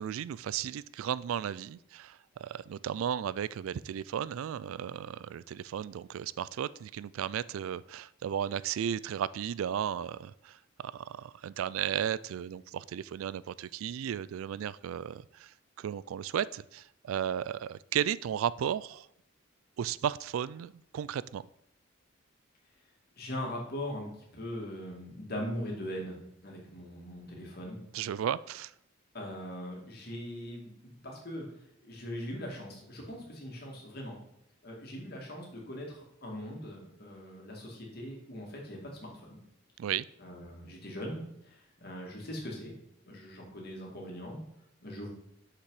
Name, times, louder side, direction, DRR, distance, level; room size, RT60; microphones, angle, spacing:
voice 1, 0.0-19.1 19.8-21.4 27.9-28.7 39.8-40.1, right 9 dB, 80° right, 19 dB, 0.3 m, -34 dB
voice 2, 23.2-26.2 26.4-27.8 29.1-31.5 31.8-34.2 34.6-39.4 40.2-42.7 43.0-44.4 44.8-45.1, equal, 50° left, -1 dB, 2.2 m, -41 dB
6.7 x 5.8 x 4.8 m, 0.77 s
head